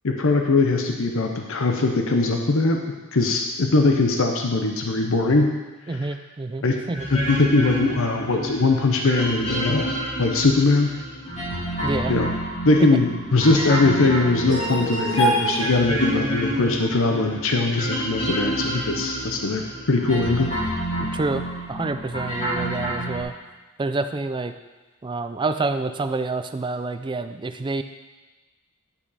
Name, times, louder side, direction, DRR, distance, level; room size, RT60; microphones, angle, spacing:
voice 1, 0.0-2.8 3.1-5.5 5.9-6.1 6.6-6.8 7.1-9.9 10.2-10.9 12.1-12.3 12.6-20.5, left 3 dB, 65° left, 3 dB, 0.8 m, -21 dB
voice 2, 5.9-7.1 11.8-12.1 21.0-23.3 23.8-24.5 25.0-27.8, right 3 dB, 20° right, 9 dB, 0.4 m, -28 dB
sound 1, 6.9-23.2, right 1 dB, 30° left, 2.5 m, -28 dB
10.5 x 5.8 x 4.1 m, 1.2 s
head